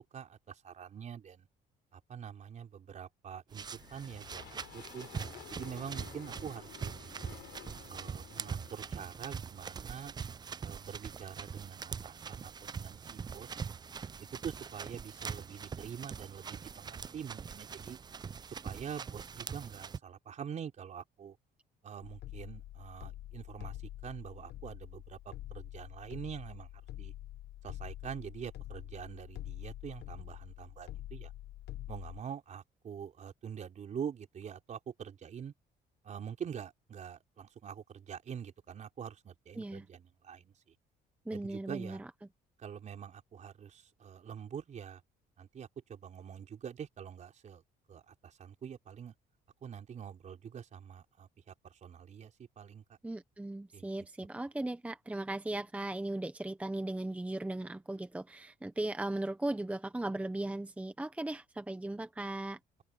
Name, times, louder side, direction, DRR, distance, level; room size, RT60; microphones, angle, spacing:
voice 1, 0.0-1.5 1.9-5.1 5.5-7.2 7.9-10.1 10.6-13.5 14.4-18.0 18.5-21.4 21.8-23.8 24.0-26.7 27.0-27.1 27.6-31.3 31.9-35.5 36.0-40.5 41.3-42.0 42.6-45.0 45.4-47.6 47.9-49.1 49.6-52.8 53.7-53.9, right 8 dB, 45° right, 4.3 m, -45 dB
sound 1, 3.5-20.0, right 6 dB, 25° right, 0.5 m, -43 dB
sound 2, 3.6-10.0, left 17 dB, 85° left, 7.1 m, -53 dB
sound 3, 22.0-32.2, left 14 dB, 70° left, 1.0 m, -46 dB
voice 2, 41.3-42.0 53.0-62.6, right 2 dB, 10° right, 0.9 m, -37 dB
open air
cardioid pair, 110°, 17 cm